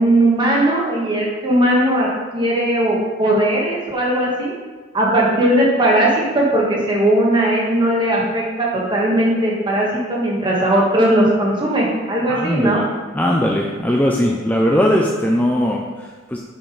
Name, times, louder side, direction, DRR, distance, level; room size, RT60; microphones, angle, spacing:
voice 1, 0.0-4.5 4.9-12.8, right 1 dB, 25° right, -3 dB, 1.7 m, -18 dB
voice 2, 12.3-12.8 13.1-16.4, equal, 10° left, -1 dB, 0.5 m, -19 dB
7.2 x 5.6 x 4.8 m, 1.4 s
head